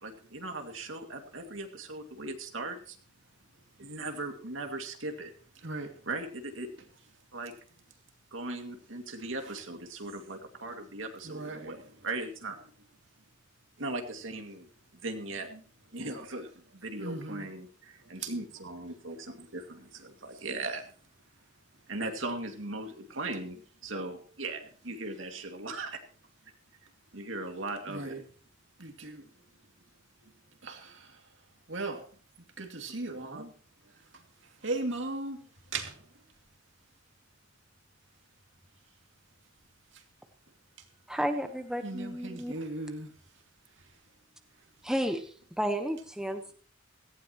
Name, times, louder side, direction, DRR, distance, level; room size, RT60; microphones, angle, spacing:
voice 1, 0.0-3.0 3.8-5.3 6.1-6.7 7.3-7.5 8.3-12.7 13.8-14.7 14.9-15.6 15.9-20.9 21.9-26.0 27.1-28.2 33.2-33.4, right 2 dB, 90° right, 4 dB, 2.3 m, -38 dB
voice 2, 5.6-6.0 9.2-9.6 11.2-12.1 13.2-13.3 17.0-17.5 18.0-18.3 27.1-27.3 27.9-28.2 28.8-29.3 30.2-30.3 30.6-31.4 31.7-32.1 32.6-33.5 33.8-36.2 39.9-40.0 40.8-40.9 41.8-43.2 43.8-44.0 44.6-44.7, right 2 dB, 70° right, 4 dB, 2.5 m, -39 dB
voice 3, 41.1-42.5 44.8-46.5, equal, 5° right, 6 dB, 1.1 m, -32 dB
17.5 x 15.5 x 3.0 m, 0.42 s
head